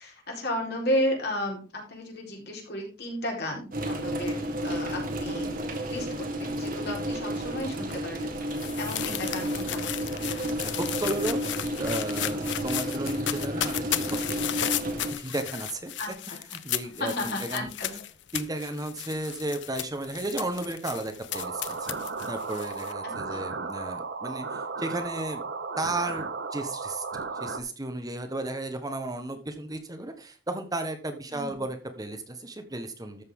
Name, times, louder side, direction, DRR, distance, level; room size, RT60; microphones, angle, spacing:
voice 1, 0.0-5.5 5.9-8.4 8.8-10.1 16.0-16.1 17.0-17.9 23.3-23.4 31.3-31.6, left 1 dB, 65° left, -1 dB, 4.2 m, -33 dB
sound 1, 3.7-15.1, right 1 dB, 50° right, 1.8 m, -32 dB
sound 2, 7.9-22.9, left 11 dB, 90° left, 0.7 m, -35 dB
voice 2, 10.5-11.4 11.8-14.6 15.2-17.7 18.3-22.0 22.3-25.5 25.8-33.2, right 2 dB, 20° right, 6 dB, 1.2 m, -34 dB
sound 3, 21.3-27.6, right 4 dB, 75° right, 0.9 m, -35 dB
13.5 x 6.5 x 3.7 m, 0.36 s
head